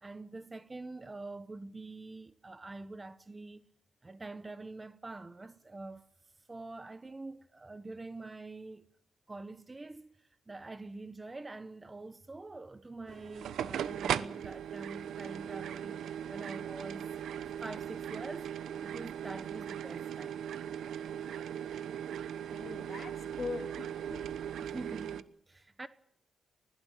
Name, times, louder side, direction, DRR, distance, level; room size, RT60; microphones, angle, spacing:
voice 1, 0.0-3.6 4.0-6.1 6.5-8.9 9.3-10.2 10.5-16.0 16.3-17.1 17.6-20.4 24.6-25.9, right 2 dB, 20° right, 1.1 m, -45 dB
sound 1, 13.1-25.2, right 9 dB, 85° right, 1.0 m, -38 dB
voice 2, 22.5-24.4 24.7-24.9, left 4 dB, 45° left, 3.3 m, -42 dB
21.0 x 16.5 x 9.1 m
cardioid pair, 115°, 0 cm